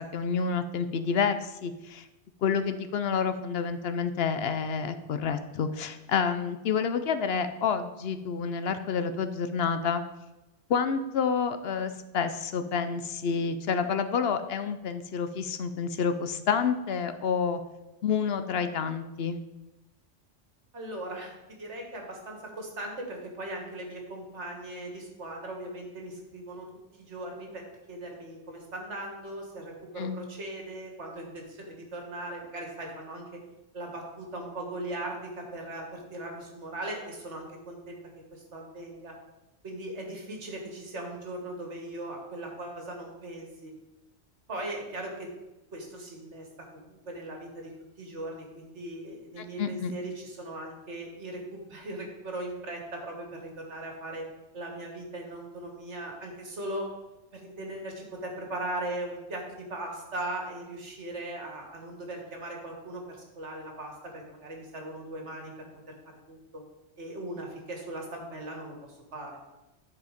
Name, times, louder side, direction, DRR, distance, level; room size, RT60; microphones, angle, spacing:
voice 1, 0.0-2.1 2.4-10.0 10.7-17.6 18.0-19.4 30.0-30.2 49.4-49.9, left 6 dB, 65° left, 10 dB, 0.8 m, -29 dB
voice 2, 20.7-26.7 27.0-33.4 33.7-38.0 38.3-39.1 39.6-43.7 44.5-45.3 45.7-46.5 46.7-54.3 54.5-56.9 57.3-65.5 65.9-66.0 66.3-66.6 67.0-69.4, right 1 dB, 75° right, 1 dB, 2.1 m, -39 dB
10.5 x 4.9 x 5.1 m, 1.0 s
omnidirectional pair, 1.2 m